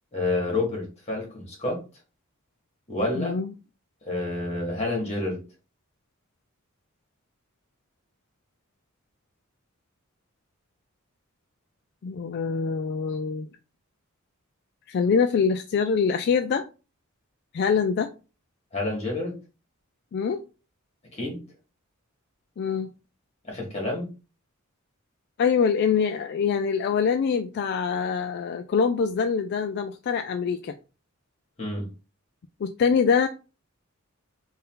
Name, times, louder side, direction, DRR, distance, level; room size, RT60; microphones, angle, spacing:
voice 1, 0.1-1.8 2.9-3.4 4.0-5.4 18.7-19.4 21.1-21.4 23.4-24.1 31.6-31.9, left 2 dB, 30° left, 0 dB, 1.7 m, -29 dB
voice 2, 3.1-3.5 12.0-13.5 14.9-16.6 17.5-18.1 20.1-20.4 22.6-22.9 25.4-30.7 32.6-33.3, left 6 dB, 50° left, 7 dB, 0.3 m, -24 dB
3.8 x 2.6 x 3.8 m, 0.32 s
head